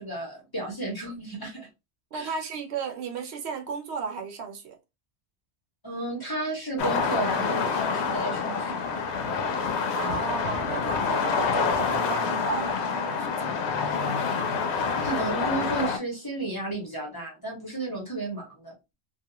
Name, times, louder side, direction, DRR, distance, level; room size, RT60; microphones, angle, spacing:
voice 1, 0.0-1.7 2.1-2.3 5.8-9.0 10.0-10.2 14.9-18.7, right 2 dB, 20° left, 0.9 m, -33 dB
voice 2, 2.1-4.8 9.9-13.7, right 5 dB, 80° right, 0.9 m, -34 dB
sound 1, 6.8-16.0, left 5 dB, 85° left, 0.9 m, -27 dB
2.4 x 2.3 x 2.8 m
omnidirectional pair, 1.1 m